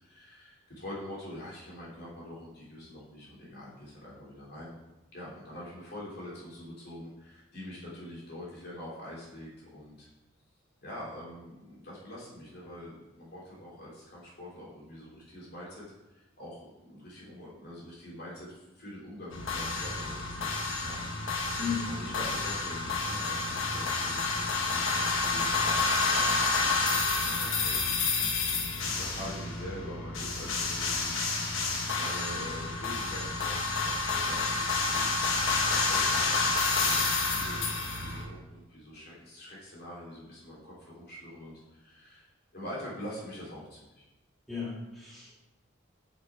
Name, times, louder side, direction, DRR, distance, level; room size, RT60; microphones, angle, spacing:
voice 1, 0.0-4.7 5.1-10.1 10.8-27.9 28.8-37.6 38.0-42.3 42.5-44.1, left 1 dB, 55° left, -6 dB, 3.1 m, -45 dB
sound 1, 19.3-38.2, left 3 dB, 75° left, 1.2 m, -29 dB
voice 2, 21.6-21.9 44.5-45.3, left 6 dB, ahead, -8 dB, 2.3 m, -35 dB
6.6 x 6.1 x 4.7 m, 0.99 s
head